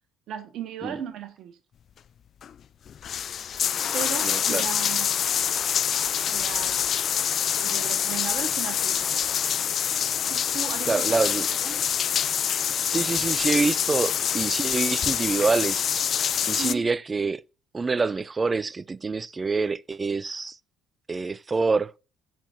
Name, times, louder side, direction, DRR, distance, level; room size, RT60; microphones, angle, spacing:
voice 1, 0.3-1.6 3.9-5.2 6.3-6.8 7.6-9.3 10.3-11.2 11.5-11.8 16.6-16.9, right 8 dB, 55° right, 1.6 m, -36 dB
sound 1, 2.4-2.5 2.9-16.7, left 8 dB, 45° left, 0.5 m, -26 dB
voice 2, 4.2-4.7 10.9-11.5 12.9-16.2 16.5-17.4 17.7-20.6 21.1-22.0, right 4 dB, 25° right, 0.4 m, -26 dB
16.5 x 6.0 x 2.7 m
figure-of-eight pair, 50°, 0 cm